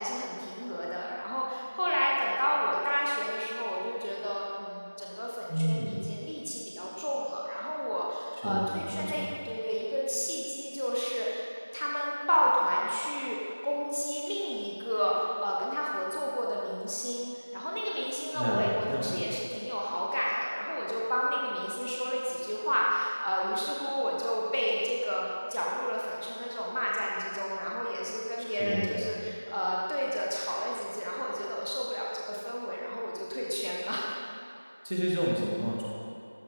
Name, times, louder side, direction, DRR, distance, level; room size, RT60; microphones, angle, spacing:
voice 1, 0.0-34.1, equal, 20° left, -4 dB, 0.7 m, -31 dB
voice 2, 5.5-6.0 8.4-9.3 18.3-19.3 28.6-29.1 34.8-35.8, equal, 40° right, -4 dB, 1.6 m, -31 dB
12.5 x 6.9 x 3.6 m, 2.6 s
figure-of-eight pair, 180°, 0 cm